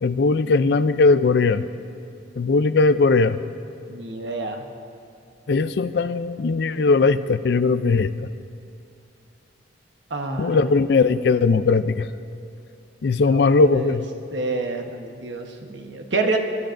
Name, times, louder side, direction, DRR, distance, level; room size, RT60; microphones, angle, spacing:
voice 1, 0.0-1.6 2.4-3.4 5.5-8.3 10.4-12.1 13.0-14.0, left 4 dB, 60° left, 13 dB, 0.4 m, -19 dB
voice 2, 3.9-4.6 10.1-10.6 13.2-14.0 14.3-16.4, right 3 dB, 70° right, 4 dB, 1.1 m, -28 dB
23.0 x 12.5 x 2.6 m, 2.5 s
head